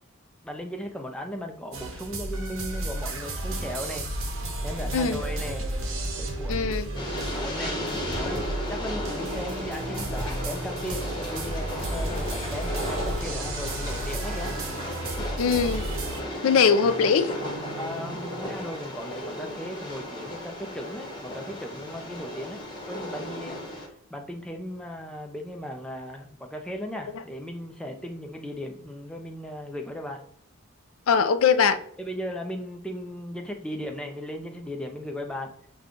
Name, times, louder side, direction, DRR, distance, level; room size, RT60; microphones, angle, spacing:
voice 1, 0.4-4.1 4.6-5.7 6.2-14.5 17.8-30.2 32.0-35.5, equal, 5° left, 0.5 m, -37 dB
sound 1, 1.7-16.2, right 1 dB, 65° right, 0.9 m, -33 dB
voice 2, 6.5-6.9 15.4-15.8 16.4-17.3 31.1-31.8, left 6 dB, 75° left, 0.4 m, -21 dB
Train, 6.9-23.9, left 1 dB, 20° left, 1.0 m, -35 dB
sound 2, 9.4-11.3 13.0-15.0 16.8-18.7, right 1 dB, 50° right, 1.6 m, -43 dB
5.3 x 2.2 x 3.7 m
head